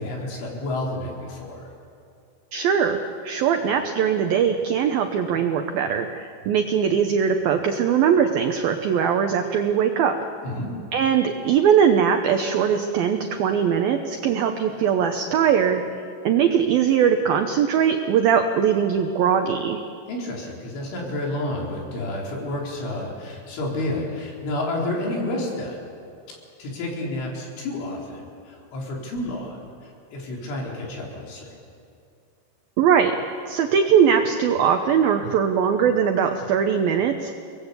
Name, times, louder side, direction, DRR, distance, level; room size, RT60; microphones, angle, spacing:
voice 1, 0.0-1.7 10.4-10.7 20.1-25.9 26.3-31.5, left 1 dB, 75° left, -2 dB, 6.6 m, -30 dB
voice 2, 2.5-3.0 3.2-10.1 10.9-15.8 16.2-19.8 32.8-33.2 33.5-37.3, right 7 dB, 80° right, 5 dB, 2.1 m, -20 dB
29.5 x 19.5 x 8.3 m, 2.5 s
omnidirectional pair, 5.6 m